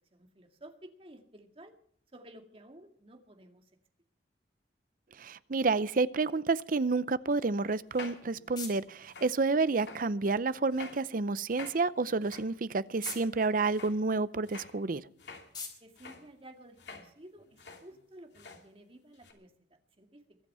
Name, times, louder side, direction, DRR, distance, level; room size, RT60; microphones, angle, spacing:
voice 1, 0.1-1.7 2.1-3.7 15.8-20.4, right 1 dB, 30° right, 5 dB, 2.1 m, -53 dB
voice 2, 5.2-15.0, right 3 dB, 50° right, 17 dB, 0.6 m, -29 dB
sound 1, 7.8-9.5 9.8-10.1 10.7-11.0 11.5-13.3 13.7-14.0 14.4-15.5 16.0-16.3 16.8-17.1 17.4-18.0 18.3-18.7 19.1-19.3, left 4 dB, 70° left, 2.7 m, -49 dB
sound 2, 7.8-17.2, left 5 dB, 25° left, 4.3 m, -51 dB
23.0 x 8.3 x 5.6 m, 0.65 s
head